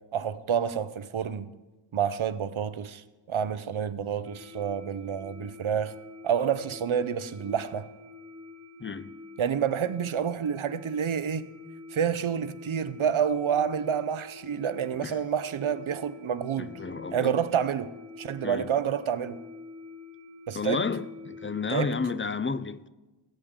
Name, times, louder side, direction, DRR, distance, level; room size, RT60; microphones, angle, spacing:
voice 1, 0.1-1.5 1.9-5.9 6.2-7.9 9.4-11.5 11.9-16.7 17.1-17.9 18.2-19.4 20.5-20.8 21.7-21.9, right 8 dB, 80° right, 0.6 m, -28 dB
sound 1, 4.2-22.0, left 3 dB, 30° right, 0.8 m, -47 dB
voice 2, 8.8-9.2 15.0-15.2 16.6-17.3 18.4-18.7 20.5-22.9, left 4 dB, 25° left, 0.4 m, -31 dB
19.0 x 8.5 x 3.6 m
wide cardioid pair, 45°, 47 cm